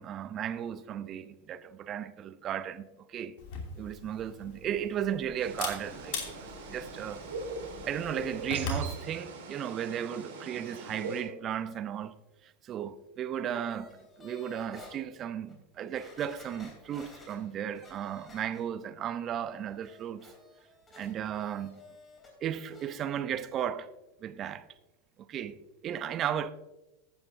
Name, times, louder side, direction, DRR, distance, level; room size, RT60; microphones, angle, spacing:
voice 1, 0.0-3.3 3.8-7.2 7.8-12.1 12.4-13.9 14.2-20.3 21.0-21.8 22.4-23.9 24.2-24.6 25.3-25.6 25.8-26.5, right 9 dB, 35° right, 0.7 m, -35 dB
Camera, 3.4-8.9, left 3 dB, 60° left, 2.8 m, -40 dB
sound 1, 5.4-11.2, right 3 dB, 70° right, 3.2 m, -42 dB
sound 2, 13.7-15.0 15.5-15.6 15.9-18.9 19.2-22.3 22.6-23.0 23.3-23.4, left 3 dB, 20° left, 3.6 m, -53 dB
14.5 x 9.1 x 2.7 m
hypercardioid pair, 95°, 0 cm